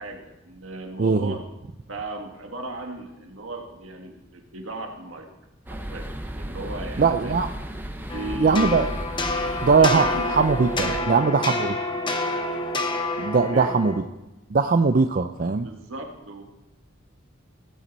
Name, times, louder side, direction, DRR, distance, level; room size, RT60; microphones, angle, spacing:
voice 1, 0.0-1.4 1.9-5.3 5.7-7.3 8.1-8.8 9.8-10.2 10.8-11.2 13.5-13.7 15.6-16.4, right 2 dB, 75° right, 3 dB, 1.9 m, -36 dB
voice 2, 1.0-1.3 7.0-7.5 8.4-8.9 9.6-11.8 13.2-13.9 14.5-15.7, right 4 dB, 45° right, 7 dB, 0.5 m, -20 dB
Algate - Area Ambience, 5.7-11.0, right 1 dB, 10° right, 0.9 m, -34 dB
sound 1, 8.1-14.0, left 2 dB, 25° left, 1.0 m, -28 dB
16.5 x 9.1 x 4.1 m, 0.99 s
head